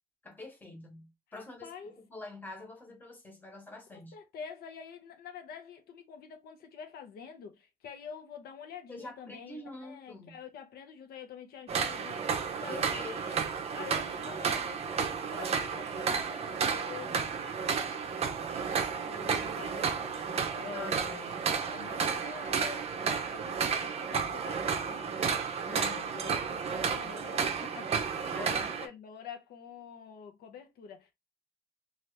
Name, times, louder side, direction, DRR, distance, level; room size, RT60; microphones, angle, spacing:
voice 1, 0.2-1.7 2.1-4.1 8.9-10.3 12.7-13.3 20.7-21.0 25.6-26.0 28.3-28.7, left 2 dB, 10° left, 1.1 m, -45 dB
voice 2, 1.3-1.9 4.1-13.4 13.7-17.6 18.9-23.5 23.8-25.1 25.7-31.1, left 7 dB, 70° left, 0.7 m, -47 dB
sound 1, 11.7-28.9, right 6 dB, 40° right, 0.5 m, -32 dB
2.8 x 2.4 x 3.2 m
cardioid pair, 155°, 17 cm